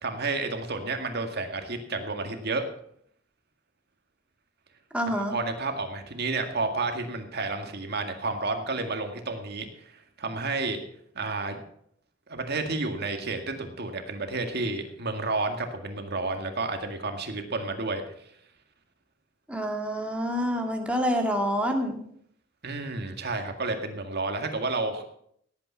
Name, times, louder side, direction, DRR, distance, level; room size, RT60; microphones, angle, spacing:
voice 1, 0.0-2.7 5.1-10.8 11.2-11.6 12.3-18.0 22.6-25.1, right 3 dB, 55° right, 5 dB, 2.0 m, -31 dB
voice 2, 4.9-5.4 19.5-22.0, equal, 5° right, 2 dB, 2.2 m, -27 dB
17.5 x 8.7 x 5.8 m, 0.68 s
head